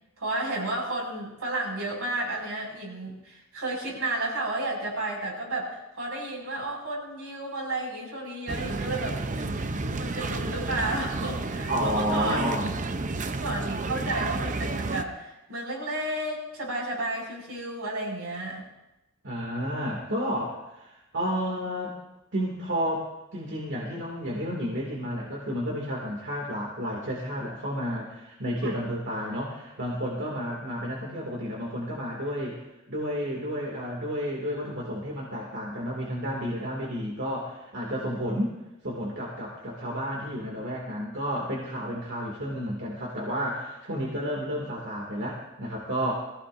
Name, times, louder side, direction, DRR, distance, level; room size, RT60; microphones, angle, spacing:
voice 1, 0.2-9.7 10.0-12.4 13.4-18.7 28.6-28.8 38.1-38.3, right 2 dB, 85° right, -2 dB, 6.1 m, -32 dB
sound 1, 8.5-15.0, right 3 dB, 40° right, 0.7 m, -31 dB
voice 2, 11.7-12.7 19.2-22.0 22.3-32.6 32.9-38.5 38.8-46.1, equal, 60° right, -3 dB, 2.4 m, -31 dB
21.5 x 16.0 x 2.6 m, 0.94 s
head